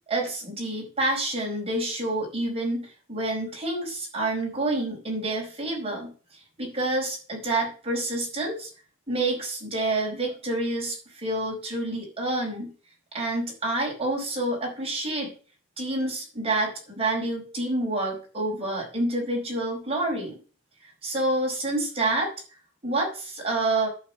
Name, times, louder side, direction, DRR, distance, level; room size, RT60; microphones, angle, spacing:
voice 1, 0.1-8.7 9.1-12.7 13.1-15.3 15.8-20.4 20.8-22.3 22.8-23.9, right 2 dB, 25° right, -2 dB, 4.8 m, -28 dB
11.5 x 4.4 x 7.5 m, 0.38 s
head